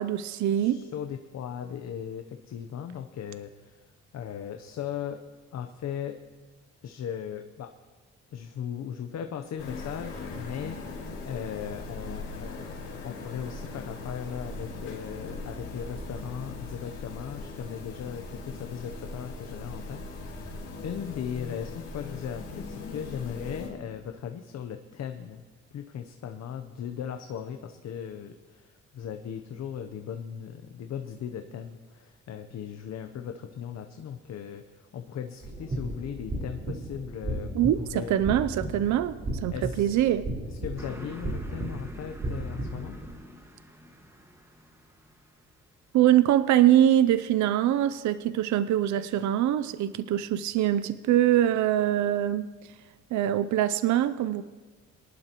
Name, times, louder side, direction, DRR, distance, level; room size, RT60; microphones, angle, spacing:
voice 1, 0.0-0.8 37.5-39.2 39.4-40.2 45.9-52.5 53.1-54.4, right 12 dB, 70° right, 13 dB, 0.5 m, -23 dB
voice 2, 0.5-3.8 4.1-5.2 5.5-6.2 6.8-7.7 8.3-25.4 25.7-38.3 39.5-40.1 40.5-42.9, left 8 dB, 60° left, 6 dB, 0.8 m, -38 dB
sound 1, 9.6-23.7, left 3 dB, 85° left, 2.8 m, -39 dB
sound 2, 35.4-43.1, right 1 dB, 35° right, 4.1 m, -35 dB
Car passing by, 40.8-45.7, equal, 10° right, 1.6 m, -47 dB
23.0 x 11.5 x 3.0 m, 1.4 s
cardioid pair, 90°, 30 cm